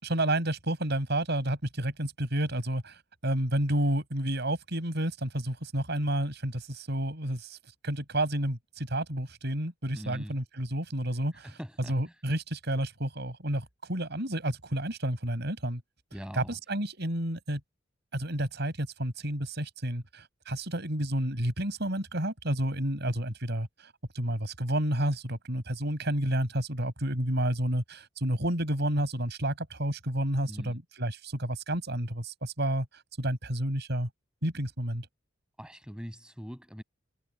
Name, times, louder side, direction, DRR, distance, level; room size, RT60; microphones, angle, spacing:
voice 1, 0.0-7.6 7.8-11.5 11.9-15.8 16.3-17.6 18.1-32.9 33.2-34.1 34.4-35.1, right 1 dB, 60° right, 6.0 m, -30 dB
voice 2, 9.9-10.4 11.3-12.0 16.1-16.6 30.5-30.8 35.6-36.8, equal, 5° right, 6.2 m, -42 dB
head